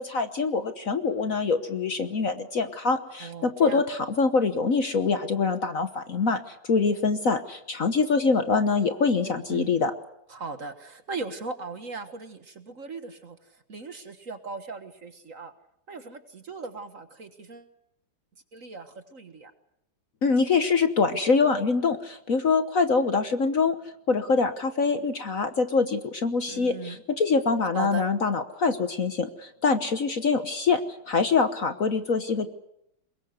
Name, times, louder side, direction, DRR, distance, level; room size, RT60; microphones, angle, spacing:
voice 1, 0.0-9.9 20.2-23.8 24.1-30.8 31.1-32.5, left 4 dB, 50° left, 9 dB, 1.3 m, -24 dB
voice 2, 3.2-3.8 9.2-9.7 10.3-15.5 15.9-17.7 18.5-19.5 26.5-27.0 27.7-28.1, right 4 dB, 45° right, 9 dB, 1.7 m, -38 dB
23.0 x 22.0 x 8.0 m, 0.79 s
omnidirectional pair, 2.2 m